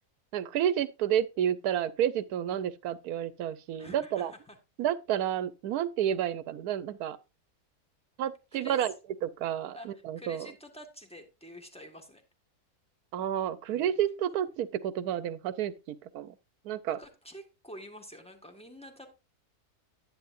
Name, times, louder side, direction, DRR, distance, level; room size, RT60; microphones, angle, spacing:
voice 1, 0.3-4.3 4.8-7.2 8.2-8.9 9.2-10.5 13.1-16.3 16.6-17.0, right 10 dB, 80° right, 1.2 m, -30 dB
voice 2, 3.8-4.6 8.5-8.8 9.7-12.2 13.7-14.0 16.9-19.1, equal, 5° left, 1.4 m, -48 dB
10.5 x 10.0 x 2.5 m
omnidirectional pair, 1.6 m